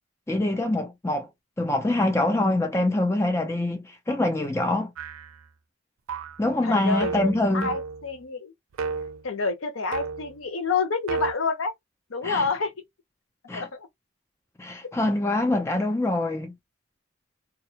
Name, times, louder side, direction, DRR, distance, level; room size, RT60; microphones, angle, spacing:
voice 1, 0.3-1.3 1.6-4.9 6.4-7.7 12.2-12.5 13.5-13.7 14.6-16.5, left 1 dB, 15° left, 0.4 m, -24 dB
sound 1, 5.0-5.4 6.1-6.5 7.0-8.1 8.7-9.2 9.9-10.4 11.1-11.3, right 5 dB, 85° right, 0.4 m, -32 dB
voice 2, 6.6-8.5 9.2-11.7 12.1-12.7 13.5-13.9, left 4 dB, 75° left, 0.7 m, -28 dB
2.3 x 2.1 x 2.8 m
head